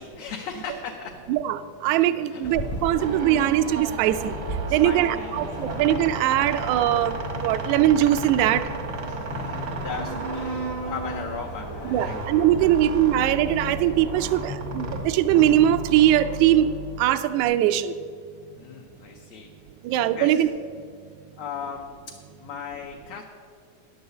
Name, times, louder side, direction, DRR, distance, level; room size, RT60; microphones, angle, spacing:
voice 1, 0.0-1.2 2.3-2.4 4.7-5.7 9.1-11.7 12.0-12.2 12.6-12.7 18.6-19.5 20.2-20.4 21.4-21.9 22.4-23.2, left 6 dB, 70° left, 1 dB, 1.7 m, -37 dB
voice 2, 1.3-4.4 4.7-8.6 11.8-16.7 17.0-17.9 19.8-20.5, right 12 dB, 80° right, 10 dB, 1.8 m, -21 dB
sound 1, 2.4-15.6, right 1 dB, 85° left, 0.9 m, -37 dB
sound 2, 3.0-17.4, right 2 dB, 60° right, 1.1 m, -34 dB
10.5 x 5.5 x 8.0 m, 2.2 s
omnidirectional pair, 3.5 m